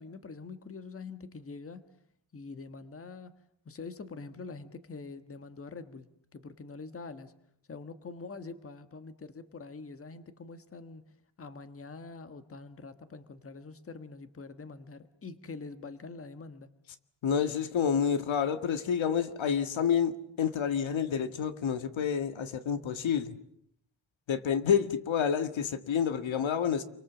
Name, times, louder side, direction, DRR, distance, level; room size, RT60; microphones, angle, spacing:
voice 1, 0.0-1.8 2.3-3.3 3.6-7.3 7.7-11.0 11.4-16.7, left 4 dB, 30° left, 10 dB, 1.5 m, -45 dB
voice 2, 17.2-23.4 24.3-26.8, left 7 dB, 90° left, 10 dB, 1.9 m, -29 dB
29.0 x 24.0 x 7.3 m, 0.70 s
wide cardioid pair, 170°, 45 cm